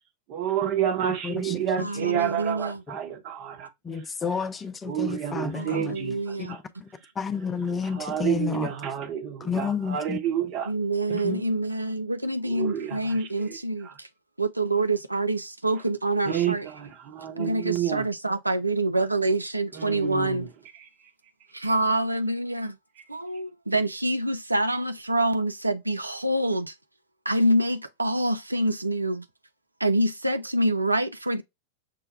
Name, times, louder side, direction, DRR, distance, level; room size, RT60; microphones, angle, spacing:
voice 1, 0.3-3.7 4.9-6.6 7.9-10.7 12.5-13.6 13.8-13.9 16.2-18.1 19.7-20.5, right 10 dB, 40° right, 1.1 m, -29 dB
voice 2, 1.2-1.9 2.9-3.0 3.8-6.0 6.4-6.9 7.2-8.7 9.4-10.2 11.1-11.4, left 6 dB, 20° left, 0.5 m, -31 dB
voice 3, 1.8-2.8 5.5-6.5 10.7-14.1 14.4-16.7 17.4-20.5 21.5-22.8 23.1-26.8 27.3-29.3 29.8-31.4, right 1 dB, 85° right, 0.4 m, -26 dB
6.6 x 2.2 x 3.2 m
figure-of-eight pair, 90°, 0 cm